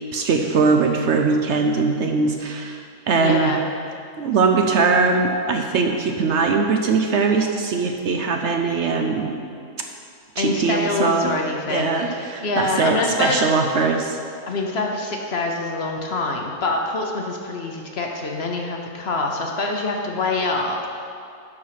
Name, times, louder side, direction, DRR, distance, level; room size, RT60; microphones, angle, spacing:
voice 1, 0.1-3.5 4.2-9.3 10.4-11.3 11.7-14.2, right 4 dB, 65° right, 4 dB, 0.8 m, -21 dB
voice 2, 3.2-3.6 10.4-13.4 14.5-21.0, left 2 dB, 55° left, 1 dB, 1.0 m, -25 dB
11.0 x 4.6 x 5.8 m, 2.4 s
omnidirectional pair, 1.5 m